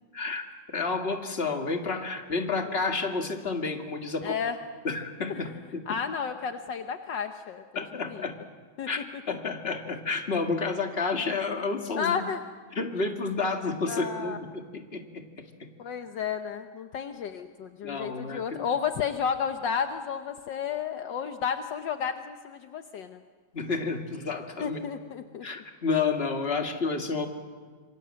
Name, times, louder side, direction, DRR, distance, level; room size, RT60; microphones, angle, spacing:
voice 1, 0.1-4.4 4.8-5.8 7.8-8.4 8.9-12.2 12.8-15.2 15.6-15.7 17.8-18.6 23.5-24.8 25.4-27.3, left 4 dB, 30° left, 4 dB, 2.2 m, -30 dB
voice 2, 4.2-4.6 5.3-5.5 5.9-8.2 8.8-8.9 12.0-12.4 13.9-14.4 15.8-23.2 24.6-25.5, left 7 dB, 70° left, 7 dB, 1.6 m, -32 dB
26.5 x 23.0 x 7.6 m, 1.5 s
omnidirectional pair, 2.1 m